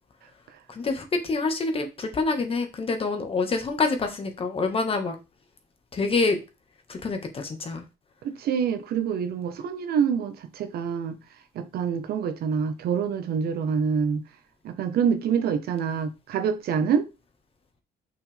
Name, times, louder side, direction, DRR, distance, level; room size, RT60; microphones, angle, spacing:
voice 1, 0.7-5.1 5.9-6.4 6.9-7.8, left 3 dB, 35° left, 1.6 m, -26 dB
voice 2, 8.2-11.2 11.5-14.2 14.6-17.0, right 7 dB, 65° right, 1.1 m, -26 dB
6.4 x 6.0 x 3.4 m
cardioid pair, 110°, 17 cm